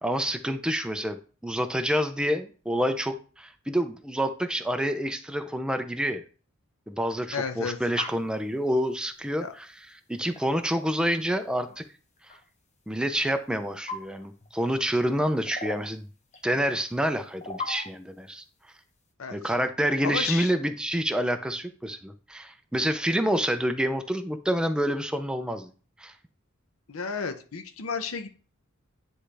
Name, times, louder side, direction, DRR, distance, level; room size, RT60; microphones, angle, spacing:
voice 1, 0.0-6.2 6.9-11.8 12.9-16.1 16.4-18.4 19.3-25.7 26.0-26.1, equal, 5° right, 7 dB, 0.4 m, -28 dB
voice 2, 7.3-7.8 9.4-9.5 19.2-19.4 20.0-20.5 26.9-28.3, left 5 dB, 80° left, 8 dB, 0.7 m, -32 dB
sound 1, 8.0-8.2 9.6-9.7 10.3-10.5 11.7-11.8 12.2-12.4 13.1-14.5 15.0-15.9 16.3-16.4 17.2-18.0, left 3 dB, 35° left, 0.9 m, -38 dB
9.8 x 3.3 x 3.4 m, 0.38 s
head